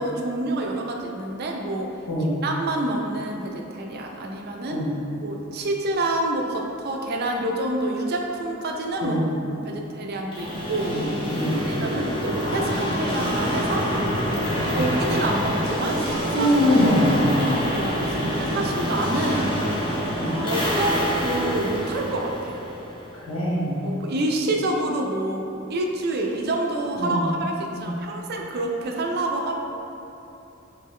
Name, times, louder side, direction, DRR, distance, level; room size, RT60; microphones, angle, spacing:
voice 1, 0.0-1.9 2.4-4.8 5.2-11.0 11.7-13.9 14.8-16.5 17.2-17.3 17.7-19.6 20.4-22.6 23.8-29.6, right 1 dB, 50° right, 1 dB, 0.4 m, -27 dB
sound 1, 10.3-23.2, equal, 25° left, 0.7 m, -26 dB
voice 2, 14.5-14.9 16.3-17.5 18.1-18.3 20.1-20.4 23.1-23.8 26.9-27.2 27.7-27.8, equal, 85° left, -5 dB, 1.1 m, -23 dB
Piano, 20.3-22.6, right 2 dB, 5° right, 0.7 m, -36 dB
3.9 x 3.2 x 3.6 m, 2.9 s
head